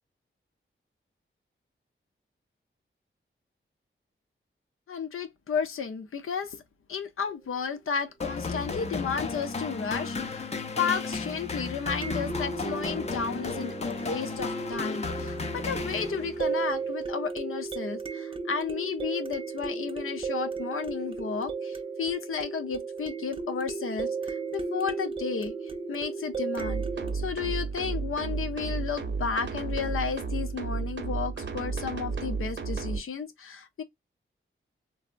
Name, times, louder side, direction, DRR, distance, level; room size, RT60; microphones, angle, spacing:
voice 1, 4.9-6.6 6.9-10.5 10.8-25.5 25.9-26.8 27.1-33.8, left 6 dB, 85° left, 0.6 m, -33 dB
sound 1, 7.3-7.4 12.0-27.1, right 4 dB, 25° right, 0.4 m, -35 dB
sound 2, 8.2-16.5, left 4 dB, 30° left, 0.5 m, -34 dB
sound 3, 26.6-33.0, right 4 dB, 60° right, 0.7 m, -32 dB
3.3 x 2.0 x 2.4 m
wide cardioid pair, 120°, 21 cm